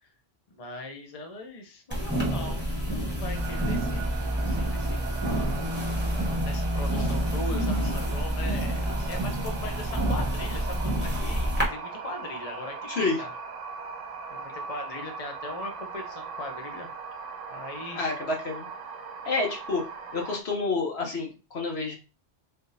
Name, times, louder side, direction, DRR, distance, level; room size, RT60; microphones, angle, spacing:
voice 1, 0.5-4.0 4.4-5.4 6.3-13.3 14.3-16.9 17.5-18.1, left 2 dB, 40° left, 4 dB, 0.7 m, -40 dB
sound 1, 1.9-11.6, equal, 10° right, 1.1 m, -28 dB
sound 2, 3.3-20.4, right 5 dB, 90° right, 1.0 m, -39 dB
voice 2, 12.8-13.2 17.9-18.7 19.2-19.8 20.1-22.0, left 3 dB, 60° left, 1 dB, 1.3 m, -29 dB
3.8 x 3.4 x 2.7 m, 0.32 s
omnidirectional pair, 1.2 m